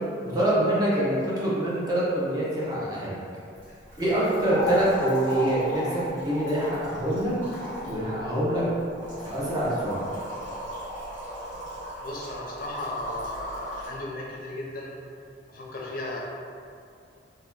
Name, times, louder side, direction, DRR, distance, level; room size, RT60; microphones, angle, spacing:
voice 1, 0.2-3.2 4.0-7.3 7.8-8.6 9.3-10.0, right 1 dB, 20° right, -8 dB, 0.7 m, -25 dB
sound 1, 3.6-13.9, left 1 dB, 45° right, 1.4 m, -36 dB
voice 2, 12.0-14.9 15.5-16.2, left 2 dB, 50° left, -4 dB, 0.5 m, -35 dB
2.8 x 2.2 x 3.5 m, 2.4 s
head